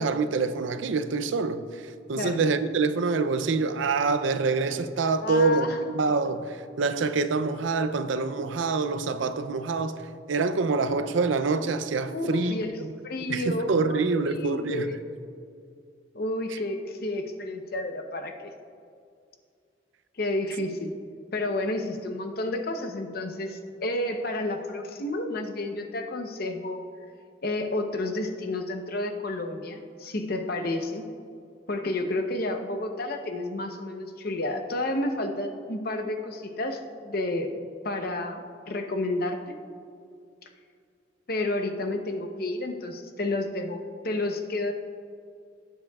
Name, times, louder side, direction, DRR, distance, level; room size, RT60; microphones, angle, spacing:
voice 1, 0.0-13.0 13.3-14.9 16.5-16.6, right 4 dB, 85° right, 0.5 m, -26 dB
voice 2, 5.2-5.8 12.1-12.7 13.0-14.0 14.4-15.0 16.1-18.5 20.2-20.9 21.3-26.8 27.4-31.1 31.7-37.5 37.8-39.6 41.3-44.7, left 2 dB, 50° left, 0.8 m, -30 dB
18.5 x 7.6 x 2.4 m
head